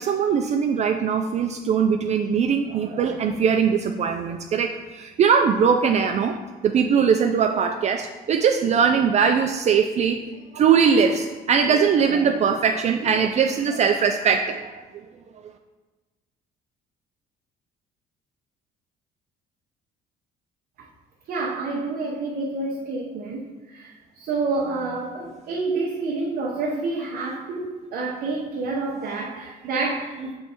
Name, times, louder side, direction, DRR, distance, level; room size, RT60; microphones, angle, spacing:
voice 1, 0.0-6.4 6.6-10.2 10.5-14.7, right 6 dB, 40° right, 4 dB, 0.4 m, -21 dB
voice 2, 21.3-30.3, right 3 dB, 60° right, -3 dB, 0.9 m, -28 dB
6.7 x 3.2 x 4.4 m, 1.2 s
cardioid pair, 110°, 17 cm